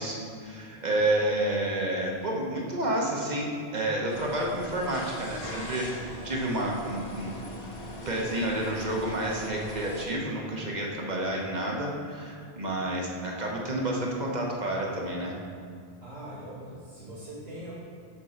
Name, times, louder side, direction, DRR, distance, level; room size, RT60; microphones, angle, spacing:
voice 1, 0.0-7.3 8.0-15.3, right 1 dB, 45° right, -1 dB, 1.2 m, -30 dB
sound 1, 4.1-10.1, equal, 65° left, 1.4 m, -40 dB
voice 2, 16.0-17.7, right 1 dB, 70° right, -11 dB, 2.5 m, -42 dB
7.1 x 4.6 x 6.6 m, 2.3 s
omnidirectional pair, 1.1 m